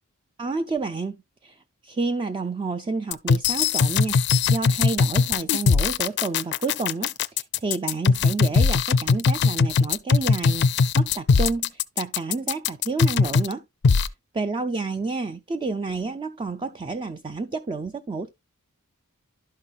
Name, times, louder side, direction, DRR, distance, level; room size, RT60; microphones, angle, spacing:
voice 1, 0.4-1.2 1.4-4.2 4.5-10.7 10.9-13.6 14.3-18.3, right 3 dB, 20° right, 0.4 m, -29 dB
sound 1, 3.1-13.5 13.8-14.1, left 5 dB, 50° left, 0.4 m, -20 dB
11.5 x 5.6 x 2.4 m
head